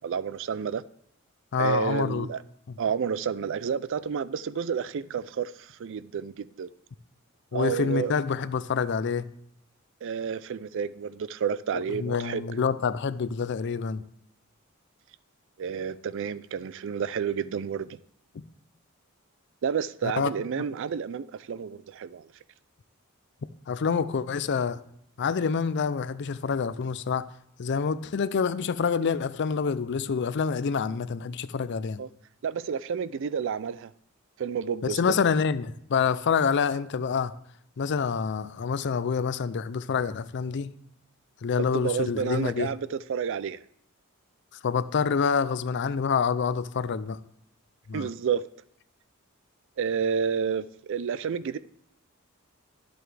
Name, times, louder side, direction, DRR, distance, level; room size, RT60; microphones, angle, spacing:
voice 1, 0.0-0.8 1.5-2.4 2.8-6.7 7.5-8.1 10.0-12.4 15.6-18.0 19.6-22.3 32.0-32.1 32.4-33.9 34.4-35.2 41.7-43.6 47.9-48.4 49.8-51.6, right 7 dB, 60° right, 0.4 m, -30 dB
voice 2, 1.5-2.3 2.7-2.8 7.5-9.3 11.7-14.0 20.0-20.3 23.7-24.8 25.2-27.3 27.6-32.0 34.8-37.3 37.8-40.7 41.4-42.7 44.6-47.2 47.9-48.1, left 6 dB, 55° left, 0.4 m, -27 dB
11.5 x 7.7 x 3.3 m
head